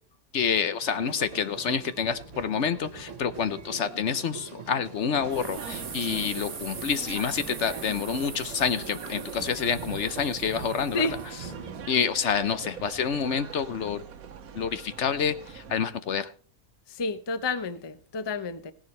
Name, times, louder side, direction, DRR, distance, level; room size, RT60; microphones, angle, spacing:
voice 1, 0.3-11.0 11.9-14.0 14.5-16.3, left 7 dB, 60° left, 1.0 m, -28 dB
sound 1, 0.8-11.9, right 5 dB, 60° right, 1.7 m, -43 dB
sound 2, 5.1-15.8, right 6 dB, 90° right, 1.4 m, -43 dB
sound 3, 5.3-11.5, right 5 dB, 30° right, 0.9 m, -42 dB
voice 2, 16.9-18.7, left 3 dB, 25° left, 0.6 m, -30 dB
17.0 x 11.0 x 3.2 m
omnidirectional pair, 1.5 m